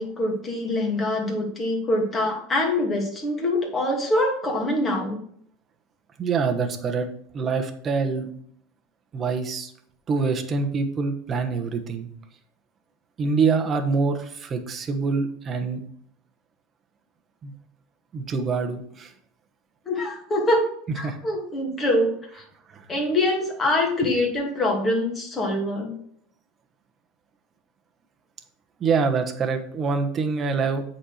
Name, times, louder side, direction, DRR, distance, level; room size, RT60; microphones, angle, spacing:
voice 1, 0.0-5.2 19.9-20.7 20.9-22.4 22.9-25.9, left 1 dB, 20° left, 0 dB, 2.4 m, -24 dB
voice 2, 6.2-7.1 7.3-8.3 9.1-9.7 10.1-12.1 13.2-15.8 17.4-17.5 18.1-19.1 21.0-21.2 22.7-22.8 24.0-24.1 28.8-30.8, right 4 dB, 25° right, 5 dB, 1.2 m, -25 dB
8.6 x 4.4 x 6.5 m, 0.64 s
supercardioid pair, 140°, 0 cm